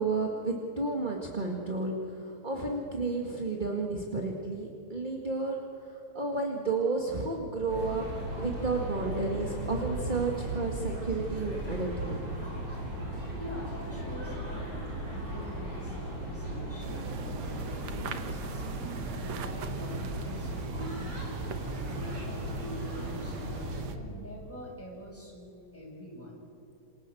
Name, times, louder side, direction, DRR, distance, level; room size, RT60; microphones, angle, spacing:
voice 1, 0.0-8.1 8.4-12.3, right 3 dB, 20° right, 1 dB, 1.6 m, -32 dB
sound 1, 7.7-23.8, right 1 dB, 45° right, 7.4 m, -37 dB
voice 2, 13.3-18.6 19.1-21.1 21.6-26.4, equal, 5° left, -4 dB, 7.7 m, -45 dB
sound 2, 16.8-24.0, right 6 dB, 65° right, 2.5 m, -40 dB
28.0 x 27.0 x 7.9 m, 2.6 s
omnidirectional pair, 3.4 m